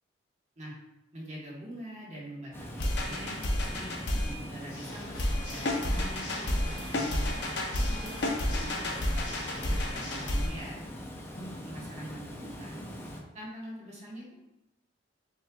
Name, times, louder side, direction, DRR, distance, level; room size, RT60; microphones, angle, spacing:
voice 1, 1.1-7.4 8.0-10.8 11.3-12.8 13.3-14.3, equal, 35° right, -5 dB, 1.4 m, -44 dB
Water, 2.5-13.2, equal, 10° left, 0.5 m, -42 dB
sound 1, 2.8-4.3 5.2-10.5, left 1 dB, 60° left, 0.7 m, -31 dB
Water / Mechanisms, 4.6-10.6, left 1 dB, 80° left, 1.2 m, -44 dB
7.5 x 3.0 x 2.3 m, 0.91 s
head